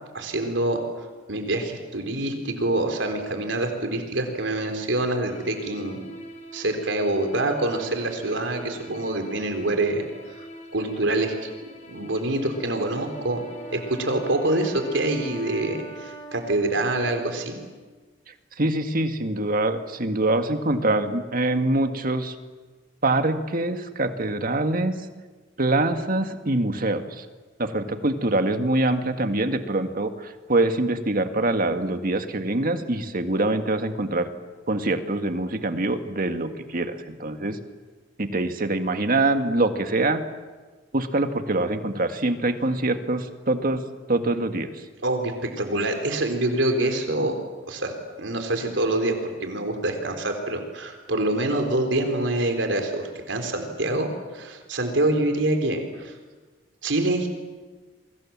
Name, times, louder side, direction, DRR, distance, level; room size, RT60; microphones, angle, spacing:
voice 1, 0.1-0.8 1.3-6.0 6.5-10.0 10.7-11.5 11.9-13.4 13.7-17.6 45.0-47.4 47.7-56.1 56.8-57.3, right 2 dB, 75° right, 5 dB, 4.0 m, -26 dB
sound 1, 5.3-15.6, equal, 40° left, 4.2 m, -43 dB
Wind instrument woodwind instrument, 12.5-17.9, right 3 dB, 25° left, 6.6 m, -43 dB
voice 2, 18.6-22.3 23.0-24.9 25.6-27.3 27.6-34.3 34.7-37.6 38.2-40.2 40.9-43.8 44.1-44.7, right 2 dB, 50° right, 7 dB, 1.9 m, -24 dB
29.5 x 24.0 x 7.5 m, 1.3 s
head